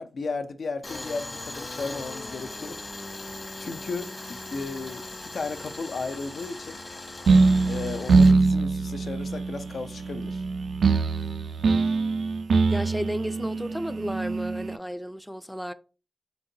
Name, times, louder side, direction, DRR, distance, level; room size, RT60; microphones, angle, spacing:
voice 1, 0.0-3.2 3.6-6.8 7.6-10.4, left 4 dB, 75° left, 0.4 m, -35 dB
Tools, 0.8-8.3, left 2 dB, 45° left, 1.0 m, -39 dB
sound 1, 7.3-14.8, right 4 dB, 90° right, 0.3 m, -23 dB
voice 2, 12.7-15.7, equal, ahead, 0.3 m, -33 dB
4.4 x 3.9 x 2.8 m
wide cardioid pair, 75°, 0 cm